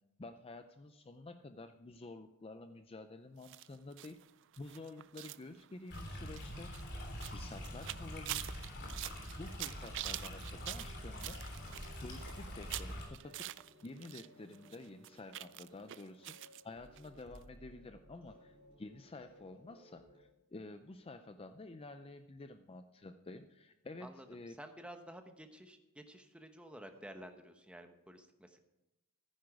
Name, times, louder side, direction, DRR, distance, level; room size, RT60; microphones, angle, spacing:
voice 1, 0.2-4.2 4.6-6.8 7.2-8.4 9.4-11.6 12.0-13.5 13.8-24.6, left 2 dB, 25° left, 9 dB, 0.5 m, -50 dB
sound 1, 3.4-14.3 14.5-16.6 17.0-17.1 17.4-17.5, right 14 dB, 55° right, 0.4 m, -46 dB
Stream, 5.9-13.0, equal, 50° left, 3.3 m, -45 dB
sound 2, 10.7-20.2, equal, 25° right, 4.5 m, -61 dB
voice 2, 24.0-28.6, right 1 dB, 5° right, 6 dB, 0.9 m, -52 dB
14.5 x 9.6 x 4.8 m, 0.93 s
head